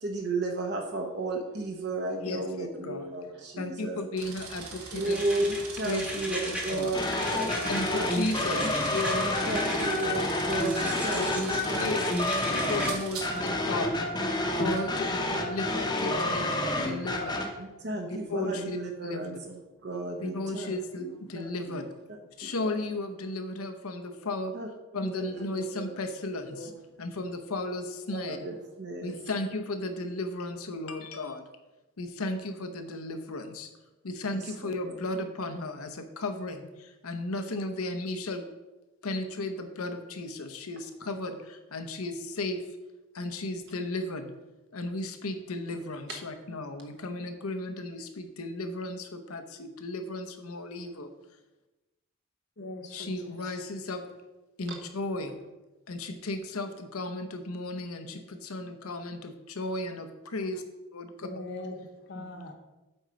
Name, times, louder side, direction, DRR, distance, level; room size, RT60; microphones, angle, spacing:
voice 1, 0.0-4.0 4.9-8.7 9.2-12.1 17.6-19.6 19.8-21.8 22.4-22.8 24.5-24.7 25.0-25.4 25.7-25.9 26.3-26.7 28.1-29.2 34.3-35.0, right 2 dB, 50° right, 2 dB, 0.9 m, -34 dB
voice 2, 2.2-3.1 3.6-5.2 5.8-6.9 7.4-9.6 11.0-12.1 12.5-14.0 14.5-17.4 18.1-19.3 20.2-21.9 22.4-24.6 24.9-28.5 29.0-31.4 32.0-33.7 34.0-38.5 39.0-42.6 43.1-44.3 44.7-51.1 52.9-54.0 54.6-55.3 55.9-60.6 60.9-61.3 62.1-62.3, left 2 dB, 80° left, 7 dB, 0.9 m, -35 dB
sound 1, 4.2-13.7 14.7-14.9, right 4 dB, 80° right, 1.3 m, -42 dB
sound 2, 5.0-6.8 7.1-10.1 10.5-11.6 11.9-12.9, equal, 5° right, 1.0 m, -37 dB
sound 3, 6.9-17.5, left 1 dB, 20° left, 0.8 m, -29 dB
voice 3, 52.6-53.6 61.2-62.5, left 1 dB, 50° left, 4 dB, 1.0 m, -41 dB
7.9 x 4.4 x 5.1 m, 1.1 s
head